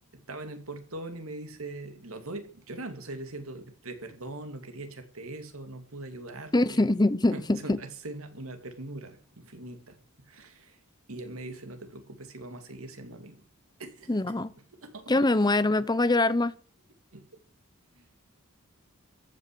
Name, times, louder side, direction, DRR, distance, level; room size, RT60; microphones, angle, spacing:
voice 1, 0.3-6.9 7.3-10.8 11.1-13.4 13.8-14.1 14.8-15.3 17.1-17.4 17.9-18.0, right 2 dB, 80° right, 2.6 m, -41 dB
voice 2, 6.5-7.8 14.1-14.5 15.1-16.5, left 2 dB, 20° left, 0.8 m, -24 dB
14.5 x 9.7 x 7.7 m
head